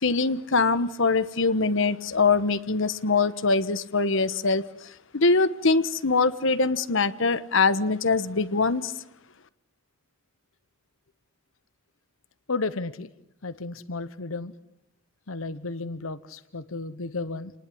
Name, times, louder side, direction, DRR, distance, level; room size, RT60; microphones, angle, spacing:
voice 1, 0.0-4.6 5.1-8.9, left 4 dB, 70° left, 1.2 m, -23 dB
voice 2, 12.5-13.1 13.4-14.5 15.3-17.5, left 3 dB, 85° left, 1.1 m, -33 dB
29.0 x 20.0 x 9.9 m
head